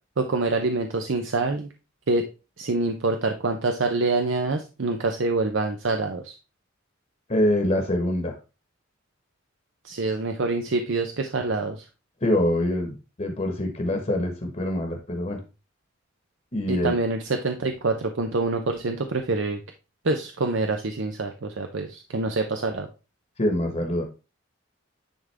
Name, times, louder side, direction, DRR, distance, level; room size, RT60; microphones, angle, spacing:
voice 1, 0.2-1.7 2.1-2.2 2.6-6.4 9.8-11.8 16.7-19.6 20.0-22.9, right 3 dB, 70° right, 5 dB, 0.7 m, -26 dB
voice 2, 7.3-8.3 12.2-15.4 16.5-16.9 23.4-24.0, left 1 dB, 35° left, 4 dB, 1.3 m, -25 dB
10.0 x 3.6 x 3.4 m, 0.31 s
head